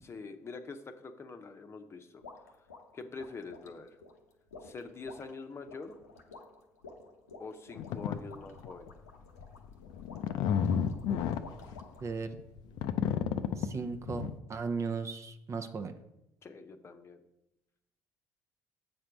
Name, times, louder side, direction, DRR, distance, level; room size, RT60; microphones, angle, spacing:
voice 1, 0.0-2.2 2.9-4.0 4.6-6.0 7.4-8.9 16.4-17.2, left 4 dB, 35° left, 6 dB, 0.8 m, -45 dB
sound 1, 2.2-12.1, left 3 dB, 85° left, 0.7 m, -52 dB
sound 2, 7.8-8.2 8.6-8.9 9.4-14.3, left 8 dB, 60° left, 0.5 m, -32 dB
voice 2, 12.0-12.4 13.6-15.9, right 4 dB, 35° right, 8 dB, 0.6 m, -36 dB
7.7 x 4.4 x 5.0 m, 0.87 s
hypercardioid pair, 55°, 8 cm